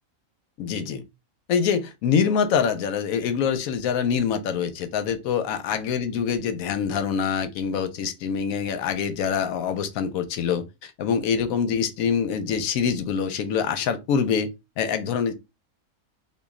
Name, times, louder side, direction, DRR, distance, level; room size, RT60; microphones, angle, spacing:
voice 1, 0.6-1.0 1.5-14.5 14.8-15.3, left 7 dB, 80° left, 1.0 m, -25 dB
3.0 x 2.5 x 3.5 m
omnidirectional pair, 1.4 m